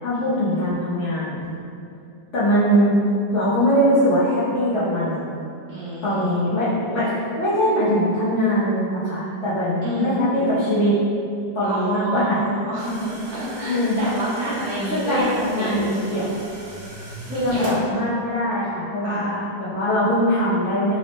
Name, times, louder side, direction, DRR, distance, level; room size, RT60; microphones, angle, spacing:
voice 1, 0.0-1.4 2.3-3.0 3.3-5.3 6.0-7.1 7.4-10.9 11.5-12.4 13.7-14.0 14.9-15.2 15.5-16.4 17.3-21.0, equal, 70° left, -10 dB, 0.7 m, -21 dB
voice 2, 5.7-6.4 9.8-10.2 11.7-16.2 17.3-17.8 19.0-19.2, right 1 dB, 60° right, -9 dB, 1.1 m, -29 dB
sound 1, 12.8-17.8, right 1 dB, 85° right, 1.6 m, -39 dB
4.2 x 2.1 x 2.9 m, 2.5 s
omnidirectional pair, 2.0 m